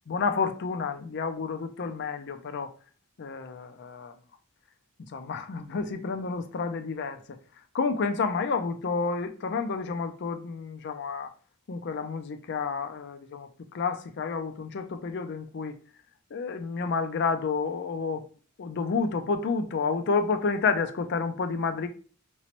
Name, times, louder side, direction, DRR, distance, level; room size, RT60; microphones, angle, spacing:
voice 1, 0.1-2.7 3.2-4.1 5.0-7.4 7.7-11.3 11.7-15.8 16.3-18.2 18.6-21.9, left 4 dB, 50° left, 0.4 m, -30 dB
3.0 x 3.0 x 2.9 m
head